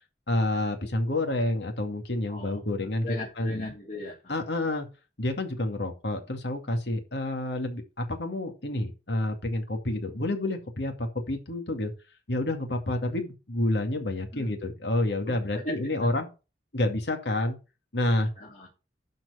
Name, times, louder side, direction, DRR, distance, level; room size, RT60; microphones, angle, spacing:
voice 1, 0.3-3.1 3.4-3.7 4.3-4.9 5.2-11.9 12.3-16.3 16.7-17.6 17.9-18.3, left 1 dB, 70° left, 2.4 m, -29 dB
voice 2, 2.3-2.6 3.0-4.4 14.3-14.6 15.5-16.1 18.4-18.7, left 2 dB, 45° left, 3.7 m, -38 dB
12.0 x 4.6 x 5.7 m
head